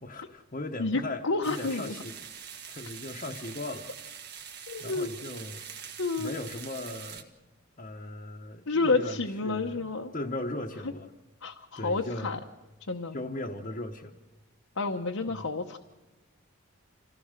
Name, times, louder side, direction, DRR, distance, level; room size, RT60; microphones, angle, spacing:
voice 1, 0.0-2.3 2.7-3.9 4.8-7.3 7.8-9.8 10.1-11.1 11.7-12.4 13.1-14.1 15.3-15.5, left 2 dB, 35° left, -1 dB, 1.0 m, -38 dB
voice 2, 0.8-1.9 4.7-5.1 6.0-6.3 8.7-10.1 11.4-12.4 12.9-13.2 14.8-15.8, left 3 dB, 70° left, 2 dB, 1.0 m, -29 dB
sound 1, 1.4-7.2, right 8 dB, 50° right, 1.7 m, -44 dB
27.0 x 16.0 x 6.6 m, 1.2 s
head